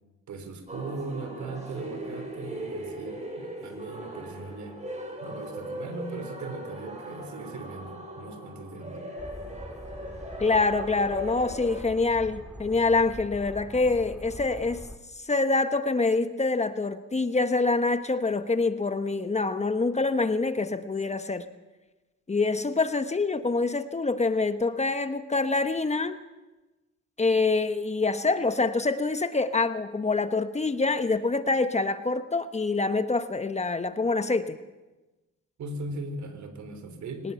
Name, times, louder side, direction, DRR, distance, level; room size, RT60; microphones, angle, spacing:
voice 1, 0.3-4.8 5.2-9.1 35.6-37.3, right 3 dB, 70° right, 9 dB, 3.8 m, -39 dB
sound 1, 0.7-11.8, right 1 dB, 25° right, 7.5 m, -39 dB
sound 2, 9.2-15.0, equal, 5° right, 2.3 m, -43 dB
voice 2, 10.4-14.8 15.1-21.5 22.3-26.2 27.2-34.6 37.2-37.3, left 3 dB, 20° left, 10 dB, 1.2 m, -26 dB
23.0 x 19.0 x 7.0 m, 1.1 s
cardioid pair, 90°, 30 cm